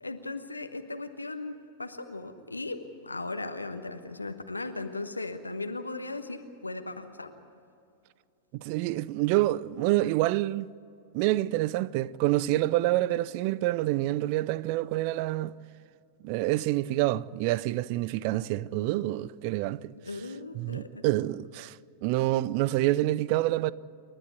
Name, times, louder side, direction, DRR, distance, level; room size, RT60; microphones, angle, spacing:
voice 1, 0.0-7.3 20.0-21.0, left 2 dB, 80° left, 1.3 m, -37 dB
voice 2, 8.5-10.7 11.1-15.5 16.2-19.9 20.5-21.8 22.0-23.7, right 16 dB, 45° right, 0.5 m, -27 dB
29.0 x 12.5 x 9.4 m
figure-of-eight pair, 90°, 0 cm